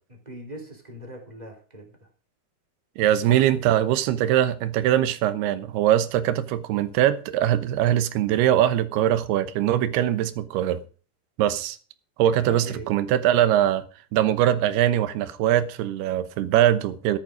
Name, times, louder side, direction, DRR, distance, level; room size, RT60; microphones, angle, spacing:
voice 1, 0.1-2.0 3.3-3.6 12.2-13.0, equal, 10° right, 2.7 m, -40 dB
voice 2, 3.0-10.8 11.4-11.8 12.2-13.8 14.1-17.2, right 12 dB, 85° right, 3.0 m, -22 dB
14.0 x 10.5 x 5.0 m
omnidirectional pair, 4.5 m